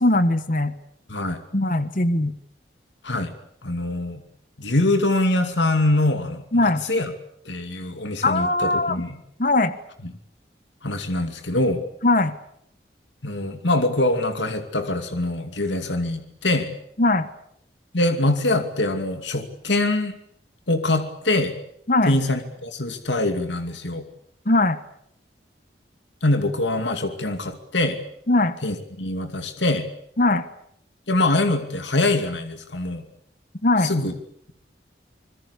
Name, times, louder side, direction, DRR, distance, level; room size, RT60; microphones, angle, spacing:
voice 1, 0.0-0.7 1.5-2.3 6.5-6.8 8.2-9.0 9.4-9.7 12.0-12.3 17.0-17.3 21.9-22.2 24.4-24.8 28.3-28.6 30.2-30.4 33.6-33.9, left 2 dB, 45° left, 12 dB, 1.4 m, -20 dB
voice 2, 1.1-1.4 3.0-3.3 3.6-4.2 4.6-7.1 7.5-9.2 10.0-10.1 10.8-11.8 13.2-16.7 17.9-20.1 20.7-21.6 22.0-24.0 26.2-28.0 28.6-29.9 31.1-33.0 33.8-34.1, left 2 dB, 80° left, 7 dB, 2.5 m, -24 dB
26.5 x 21.5 x 8.3 m, 0.71 s
head